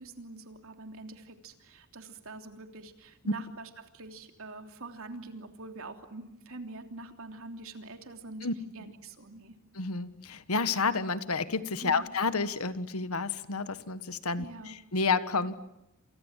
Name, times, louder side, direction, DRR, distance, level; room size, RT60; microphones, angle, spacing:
voice 1, 0.0-8.5 8.7-9.5 11.8-12.0 14.3-14.7, right 2 dB, 70° right, 5 dB, 3.2 m, -45 dB
voice 2, 9.7-15.5, left 4 dB, 75° left, 12 dB, 1.5 m, -30 dB
29.0 x 27.5 x 7.5 m, 0.87 s
head